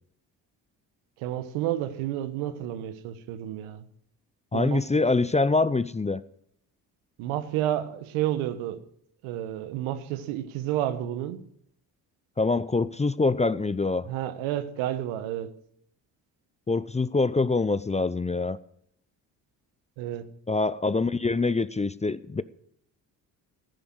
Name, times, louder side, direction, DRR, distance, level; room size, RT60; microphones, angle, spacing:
voice 1, 1.2-3.8 4.5-4.8 7.2-8.8 9.2-11.4 14.1-15.5 20.0-20.3, right 12 dB, 75° right, 1.3 m, -30 dB
voice 2, 4.5-6.2 12.4-14.1 16.7-18.6 20.5-22.4, left 3 dB, 15° left, 0.6 m, -25 dB
15.0 x 10.5 x 6.3 m
hypercardioid pair, 50°, 49 cm